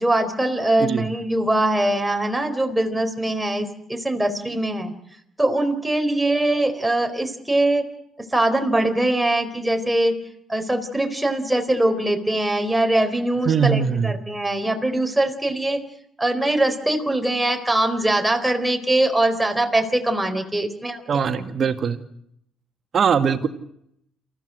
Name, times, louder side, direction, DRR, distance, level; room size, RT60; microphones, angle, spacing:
voice 1, 0.0-4.9 5.4-7.9 8.2-10.2 10.5-15.8 16.2-21.5, right 1 dB, 10° right, 4 dB, 4.2 m, -22 dB
voice 2, 13.5-14.1 21.1-22.0 22.9-23.5, right 7 dB, 55° right, 9 dB, 2.1 m, -21 dB
28.5 x 15.0 x 7.7 m, 0.74 s
hypercardioid pair, 55°, 0 cm